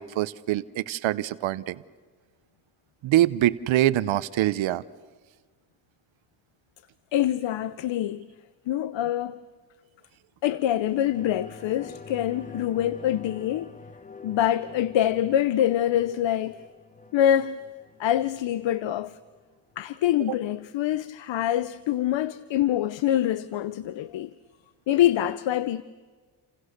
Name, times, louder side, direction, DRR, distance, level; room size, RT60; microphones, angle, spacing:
voice 1, 0.0-1.8 3.0-4.8, right 14 dB, 85° right, 0.9 m, -24 dB
voice 2, 7.1-8.3 8.7-9.4 10.4-13.7 14.2-16.6 17.1-17.6 18.0-19.2 19.8-24.3 24.9-25.8, left 11 dB, 70° left, 0.8 m, -25 dB
sound 1, 10.8-19.9 20.2-20.3, left 4 dB, 15° left, 1.4 m, -46 dB
29.5 x 28.0 x 6.6 m
cardioid pair, 85°, 46 cm